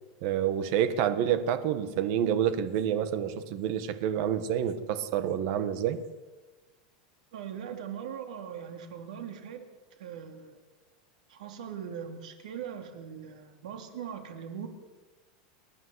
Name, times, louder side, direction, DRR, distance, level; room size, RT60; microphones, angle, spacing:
voice 1, 0.2-6.0, right 9 dB, 45° right, 12 dB, 1.5 m, -28 dB
voice 2, 7.3-9.6 10.0-10.6 11.3-14.7, right 8 dB, 80° right, 6 dB, 3.3 m, -40 dB
29.5 x 11.0 x 8.1 m, 1.3 s
supercardioid pair, 175°, 4 cm